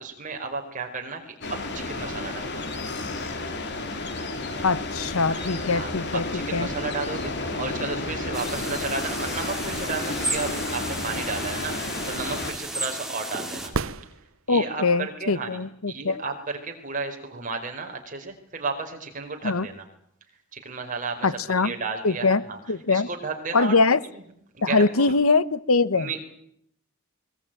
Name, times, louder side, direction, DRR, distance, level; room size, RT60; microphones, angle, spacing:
voice 1, 0.0-2.6 5.3-13.7 14.5-15.6 15.9-19.8 20.5-22.6 22.9-23.8 24.1-24.2 24.5-25.2 25.9-26.2, right 4 dB, 40° right, 3 dB, 4.7 m, -33 dB
sound 1, 1.4-12.5, left 2 dB, 55° left, 3.1 m, -32 dB
voice 2, 4.6-6.2 6.5-6.7 14.5-16.2 19.4-19.7 21.2-21.7 22.0-22.4 22.7-23.1 23.5-24.0 24.6-26.1, left 3 dB, 85° left, 17 dB, 1.1 m, -22 dB
sound 2, 8.3-13.7, right 2 dB, ahead, 3.5 m, -34 dB
sound 3, 13.7-14.9 18.7-18.8, right 4 dB, 70° right, 1.0 m, -32 dB
21.5 x 21.5 x 9.1 m, 0.72 s
head